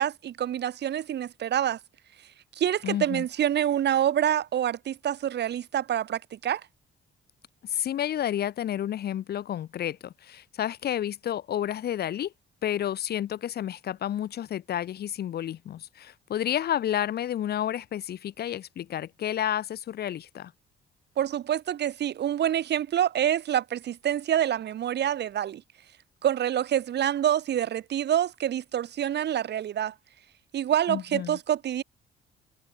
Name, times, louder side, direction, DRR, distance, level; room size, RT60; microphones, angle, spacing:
voice 1, 0.0-1.8 2.6-6.6 21.2-25.6 26.2-29.9 30.5-31.8, right 10 dB, 60° right, 1.0 m, -26 dB
voice 2, 2.8-3.2 7.6-12.3 12.6-20.5 30.9-31.4, left 11 dB, 55° left, 0.6 m, -30 dB
cardioid pair, 90°, 20 cm